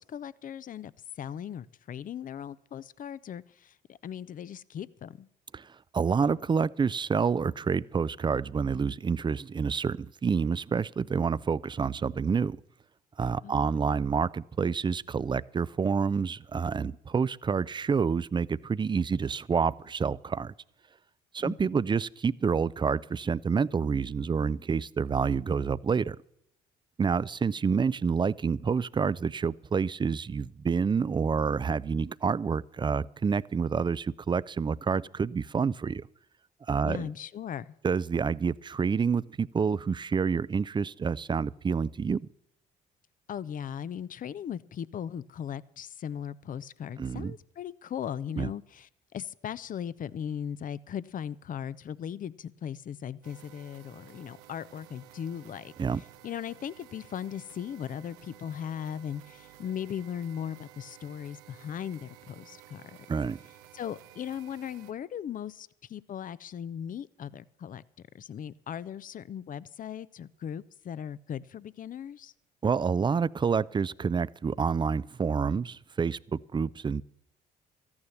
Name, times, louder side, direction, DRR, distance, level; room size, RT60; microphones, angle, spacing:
voice 1, 0.0-5.3 13.4-13.7 21.4-21.6 36.9-37.7 43.3-55.7 56.2-62.8 63.7-67.8 68.1-72.3, left 9 dB, 45° left, 19 dB, 0.6 m, -38 dB
voice 2, 5.5-12.6 13.2-20.5 21.3-26.2 27.0-36.1 36.7-37.1 37.8-42.3 47.0-47.3 48.4-48.5 55.8-56.0 63.1-63.4 72.6-77.0, right 5 dB, 25° right, 20 dB, 0.5 m, -28 dB
sound 1, 53.2-64.9, right 13 dB, 90° right, 0.7 m, -54 dB
14.0 x 9.7 x 7.1 m, 0.75 s
hypercardioid pair, 60°, 19 cm